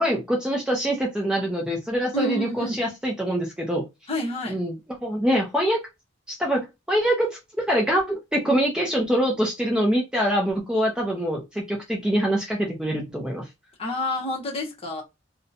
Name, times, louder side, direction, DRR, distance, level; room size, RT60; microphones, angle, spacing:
voice 1, 0.0-3.8 4.5-4.7 5.0-5.8 6.3-7.3 7.6-13.4, equal, 5° right, 0.5 m, -24 dB
voice 2, 2.1-2.9 4.1-4.6 13.8-15.0, left 1 dB, 30° left, 0.8 m, -29 dB
2.7 x 2.1 x 2.7 m
head